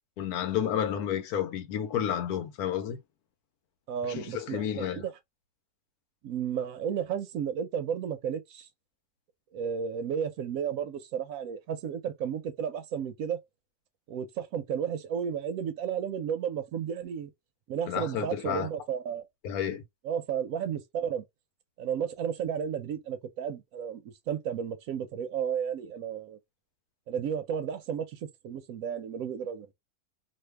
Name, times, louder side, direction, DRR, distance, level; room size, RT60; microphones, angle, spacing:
voice 1, 0.2-3.0 4.0-5.0 17.9-18.7 19.4-19.8, left 9 dB, 80° left, 1.1 m, -31 dB
voice 2, 3.9-5.1 6.2-8.7 9.5-13.4 14.1-17.3 17.7-19.2 20.0-21.2 21.8-26.4 27.1-29.7, right 8 dB, 70° right, 0.9 m, -33 dB
2.6 x 2.4 x 3.2 m
omnidirectional pair, 1.6 m